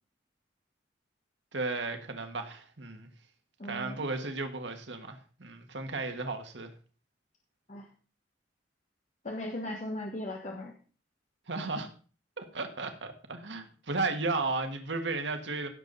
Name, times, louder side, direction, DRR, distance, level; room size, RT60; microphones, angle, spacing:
voice 1, 1.5-3.1 3.7-6.7 11.5-11.9 12.4-15.7, right 3 dB, 80° right, 1.7 m, -34 dB
voice 2, 3.6-4.0 7.7-7.9 9.2-10.7, left 1 dB, 45° left, 1.5 m, -37 dB
16.5 x 7.3 x 4.0 m
head